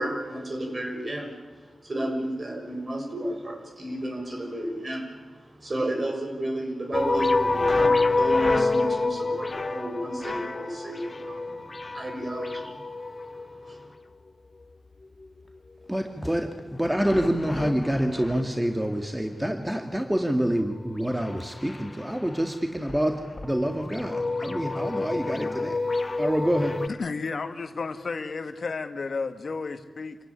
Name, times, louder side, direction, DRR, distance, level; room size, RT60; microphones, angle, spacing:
voice 1, 0.0-13.9, right 1 dB, 45° right, 3 dB, 6.4 m, -33 dB
sound 1, 6.9-13.9 16.9-18.5 21.2-21.8 22.2-22.4 22.9-23.0 23.4-26.9, left 3 dB, 40° left, 1.1 m, -28 dB
voice 2, 15.9-26.8, equal, 10° right, 4 dB, 2.2 m, -27 dB
voice 3, 26.9-30.2, left 4 dB, 65° left, 8 dB, 1.6 m, -32 dB
27.0 x 16.5 x 10.0 m, 1.3 s
cardioid pair, 45°, 0 cm